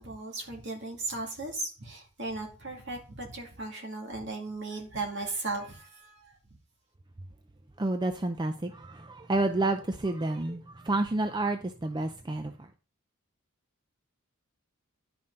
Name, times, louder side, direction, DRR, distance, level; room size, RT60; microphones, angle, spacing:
voice 1, 0.0-6.4, right 3 dB, 55° right, 2.4 m, -37 dB
voice 2, 7.8-12.7, right 2 dB, 20° right, 0.4 m, -30 dB
10.5 x 5.7 x 3.8 m
head